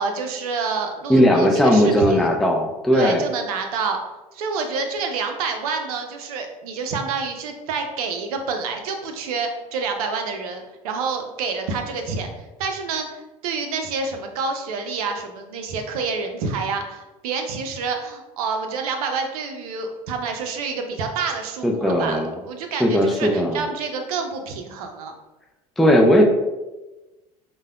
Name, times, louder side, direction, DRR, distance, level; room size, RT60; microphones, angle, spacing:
voice 1, 0.0-2.3 2.9-4.0 4.3-25.1, right 4 dB, 70° right, 5 dB, 0.5 m, -28 dB
voice 2, 1.1-3.2 21.6-22.3 22.8-23.6 25.8-26.2, equal, ahead, 1 dB, 0.4 m, -17 dB
4.8 x 2.2 x 2.2 m, 1.1 s
hypercardioid pair, 70°, 20 cm